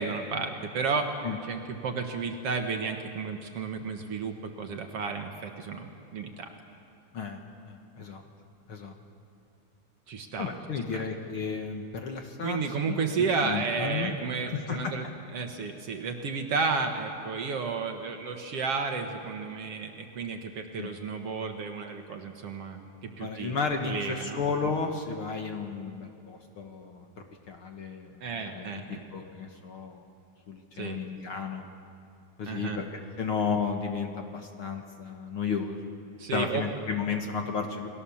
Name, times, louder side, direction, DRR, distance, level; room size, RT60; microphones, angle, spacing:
voice 1, 0.0-1.1 1.4-6.5 10.1-10.5 10.9-11.0 12.4-15.0 15.3-23.6 23.8-24.4 28.2-29.0 30.7-31.0 32.5-32.8 36.2-36.6, right 5 dB, 55° right, 4 dB, 2.2 m, -32 dB
voice 2, 7.7-8.2 8.7-8.9 10.4-12.6 12.9-14.1 14.5-14.9 20.8-20.9 23.2-27.1 27.5-28.2 28.5-30.0 30.5-31.6 32.4-32.9 33.2-35.8 36.3-37.9, left 5 dB, 50° left, 3 dB, 2.0 m, -33 dB
29.5 x 21.0 x 7.2 m, 2.5 s
omnidirectional pair, 3.5 m